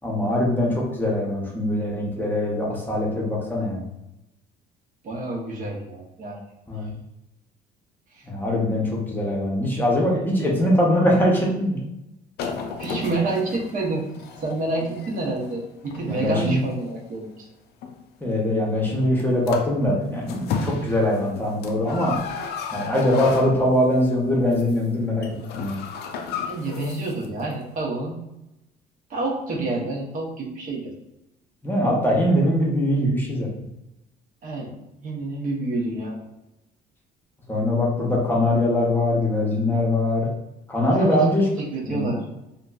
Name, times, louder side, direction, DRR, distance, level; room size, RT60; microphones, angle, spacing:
voice 1, 0.0-3.9 6.7-7.0 8.2-11.8 16.0-16.6 18.2-22.2 22.7-25.3 25.5-25.8 31.6-33.7 37.5-40.3 40.7-41.4 41.9-42.2, left 1 dB, 10° left, -3 dB, 0.7 m, -22 dB
voice 2, 5.0-6.4 8.1-8.2 12.8-14.0 14.4-17.3 26.4-28.2 29.1-30.9 34.4-34.7 35.0-36.2 40.8-41.2 41.7-42.2, right 2 dB, 50° right, -1 dB, 0.7 m, -28 dB
sound 1, 12.4-17.2 17.8-18.0 19.2-19.3 19.5-19.8 20.1-24.0 24.4-24.8 25.0-27.2 27.5-27.6, left 6 dB, 75° left, 0.4 m, -33 dB
2.8 x 2.5 x 2.3 m, 0.89 s
cardioid pair, 110°, 17 cm